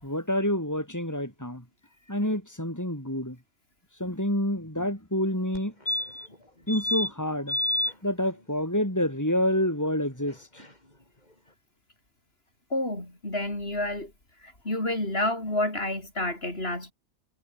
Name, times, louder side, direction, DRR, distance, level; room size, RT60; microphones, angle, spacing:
voice 1, 0.0-1.6 2.1-3.4 4.0-5.7 6.7-7.6 8.0-10.6, left 1 dB, 15° left, 6.6 m, -28 dB
sound 1, 5.5-5.6 5.9-6.3 6.7-7.1 7.5-7.9 10.3-10.4 10.6-10.7, left 1 dB, 40° left, 5.8 m, -28 dB
voice 2, 12.7-14.1 14.4-16.9, left 1 dB, 65° left, 6.8 m, -29 dB
omnidirectional pair, 1.1 m